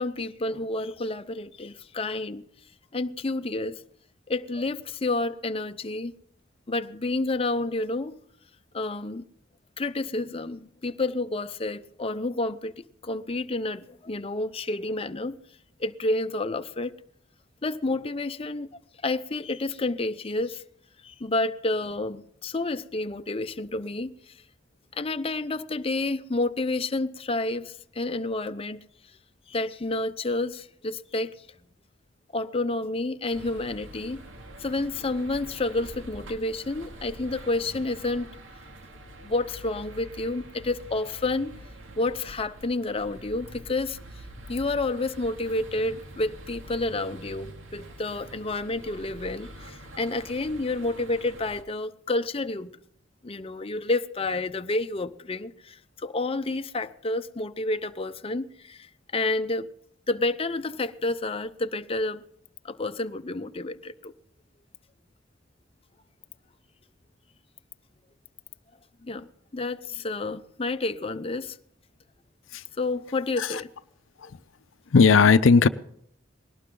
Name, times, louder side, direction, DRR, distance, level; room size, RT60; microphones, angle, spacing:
voice 1, 0.0-2.4 2.9-3.8 4.3-6.1 6.7-8.1 8.7-9.2 9.8-15.4 15.8-16.9 17.6-20.6 21.0-24.4 24.9-28.8 29.5-31.3 32.3-34.2 34.6-38.3 39.2-41.6 42.0-44.0 44.5-52.7 53.2-59.7 60.1-62.2 62.6-64.1 69.0-69.3 69.5-71.6 72.8-73.7, left 2 dB, 30° left, 0.6 m, -29 dB
sound 1, 33.3-51.6, right 1 dB, 90° right, 2.4 m, -45 dB
voice 2, 74.9-75.7, left 5 dB, 90° left, 0.6 m, -17 dB
20.5 x 18.0 x 3.8 m
head